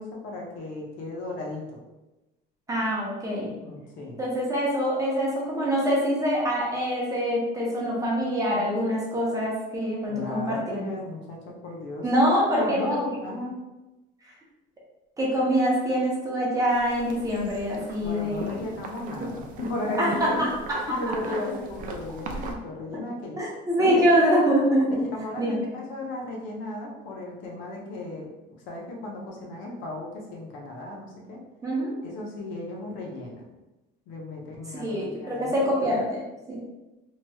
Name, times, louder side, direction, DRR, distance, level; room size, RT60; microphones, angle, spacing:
voice 1, 0.0-1.8 3.5-4.2 10.1-12.0 12.5-13.6 18.0-20.5 20.9-23.4 23.8-24.0 25.0-28.3 28.7-31.4 32.0-33.5 34.1-35.6, left 2 dB, 70° left, -2 dB, 0.8 m, -35 dB
voice 2, 2.7-3.6 4.2-10.8 12.0-12.8 14.2-14.3 15.2-18.6 20.0-20.5 23.4-24.9 25.4-25.6 31.6-31.9 34.7-36.2 36.5-36.6, equal, 15° right, -5 dB, 0.7 m, -24 dB
sound 1, 16.7-22.5, right 3 dB, 40° right, 0.4 m, -39 dB
3.0 x 2.9 x 2.3 m, 1.0 s
cardioid pair, 145°, 21 cm